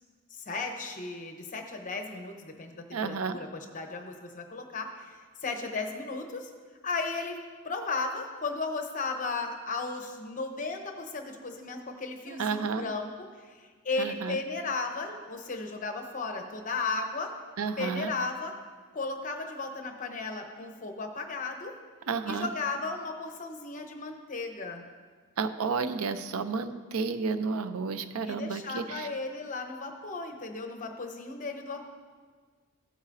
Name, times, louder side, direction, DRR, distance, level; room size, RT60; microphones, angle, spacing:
voice 1, 0.3-6.5 6.8-7.4 7.6-13.1 13.4-17.3 17.8-18.5 18.9-21.7 22.2-24.8 28.2-31.8, left 3 dB, 35° left, 4 dB, 0.9 m, -35 dB
voice 2, 2.9-3.4 12.4-12.8 14.0-14.4 17.6-18.1 22.1-22.5 25.4-29.1, right 5 dB, 75° right, 11 dB, 0.5 m, -31 dB
15.5 x 8.1 x 2.6 m, 1.6 s
head